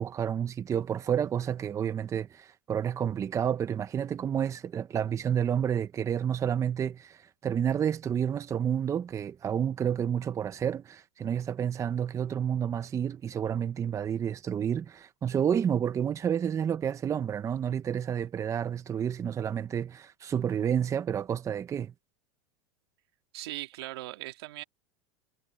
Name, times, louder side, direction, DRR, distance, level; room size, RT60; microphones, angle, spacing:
voice 1, 0.0-21.9, right 8 dB, 25° right, 0.9 m, -30 dB
voice 2, 23.3-24.6, right 17 dB, 75° right, 2.5 m, -39 dB
supercardioid pair, 125°, 13 cm